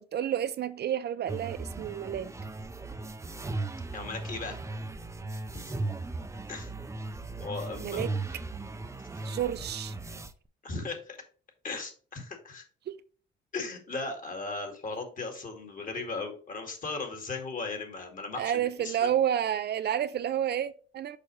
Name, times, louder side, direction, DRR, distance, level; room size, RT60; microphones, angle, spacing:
voice 1, 0.0-2.3 7.8-8.1 9.2-10.0 12.9-13.0 18.4-21.2, right 10 dB, 55° right, 0.5 m, -30 dB
sound 1, 1.3-10.3, right 2 dB, 15° right, 0.6 m, -37 dB
voice 2, 3.9-4.6 5.3-5.7 6.5-6.7 7.4-8.4 10.6-11.2 11.6-12.6 13.5-19.1, left 3 dB, 40° left, 2.2 m, -37 dB
6.6 x 5.2 x 3.2 m
cardioid pair, 90°, 20 cm